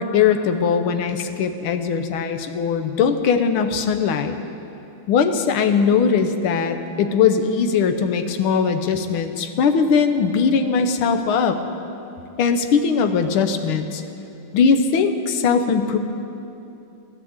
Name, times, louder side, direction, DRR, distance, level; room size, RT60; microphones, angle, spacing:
voice 1, 0.0-4.4 5.1-11.6 12.4-14.0 14.5-16.0, left 6 dB, 85° left, 7 dB, 1.7 m, -20 dB
15.5 x 10.5 x 8.0 m, 2.8 s
omnidirectional pair, 2.2 m